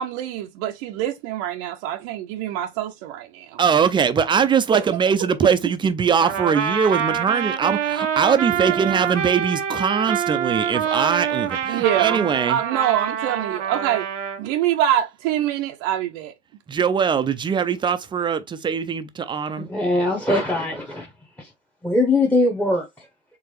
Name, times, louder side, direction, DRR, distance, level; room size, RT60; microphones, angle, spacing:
voice 1, 0.0-3.6 4.7-4.9 8.5-9.0 11.7-14.1 14.4-16.3, right 11 dB, 50° right, 0.7 m, -25 dB
voice 2, 3.6-12.6 16.7-19.7, right 6 dB, 15° right, 0.5 m, -21 dB
Trumpet, 6.2-14.4, right 8 dB, 90° right, 0.8 m, -26 dB
voice 3, 19.7-21.1 21.8-22.8, left 2 dB, 5° left, 1.0 m, -20 dB
4.7 x 3.4 x 3.1 m
hypercardioid pair, 95°, 36 cm